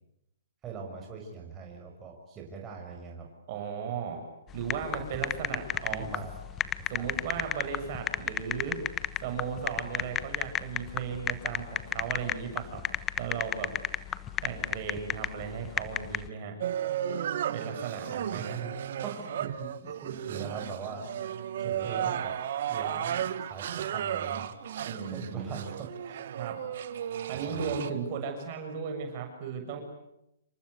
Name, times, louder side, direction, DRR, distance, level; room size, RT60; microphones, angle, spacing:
voice 1, 0.6-3.3 5.0-5.1 5.5-5.6 5.9-6.3 7.0-7.1 18.3-21.1 21.6-22.4 22.7-24.5 25.1-26.3 27.3-27.8, right 5 dB, 20° right, 0 dB, 6.5 m, -41 dB
voice 2, 3.5-4.3 4.5-6.1 6.9-8.8 9.2-12.8 13.2-13.7 14.4-16.5 17.5-18.6 24.8-25.7 26.4-26.6 27.3-29.8, right 6 dB, 45° right, 4 dB, 6.7 m, -36 dB
sound 1, 4.5-16.3, left 10 dB, 20° left, 1.1 m, -32 dB
sound 2, 16.6-27.9, right 10 dB, 60° right, 1.8 m, -34 dB
28.0 x 25.5 x 8.2 m, 0.83 s
hypercardioid pair, 140°, 0 cm